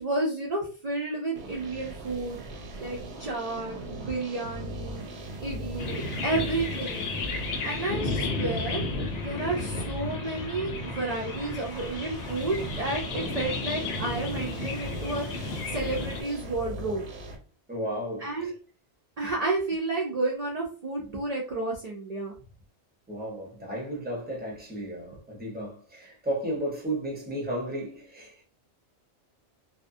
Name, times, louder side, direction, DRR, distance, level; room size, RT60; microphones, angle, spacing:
voice 1, 0.0-2.4 2.8-5.0 5.4-7.0 7.6-8.8 9.2-15.3 15.7-17.0 18.2-18.5 19.2-22.3, right 2 dB, 55° right, 0.4 m, -31 dB
sound 1, 1.4-17.4, right 1 dB, 80° right, 0.9 m, -39 dB
sound 2, 5.8-16.2, left 3 dB, 65° left, 0.8 m, -33 dB
voice 2, 7.5-7.9 17.7-18.5 23.1-28.4, right 1 dB, 10° right, 0.6 m, -34 dB
2.3 x 2.1 x 2.6 m
omnidirectional pair, 1.2 m